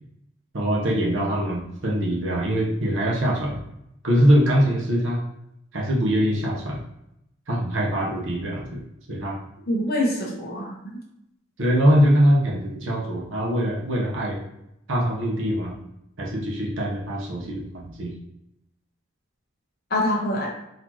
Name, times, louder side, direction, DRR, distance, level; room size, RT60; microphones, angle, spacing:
voice 1, 0.5-3.6 4.0-5.2 5.7-6.8 7.5-8.8 9.1-9.4 11.6-14.4 14.9-15.7 16.2-18.1, equal, 65° right, -2 dB, 0.9 m, -22 dB
voice 2, 9.7-10.9 19.9-20.5, left 1 dB, 50° left, -2 dB, 0.8 m, -25 dB
4.1 x 2.8 x 2.9 m, 0.82 s
head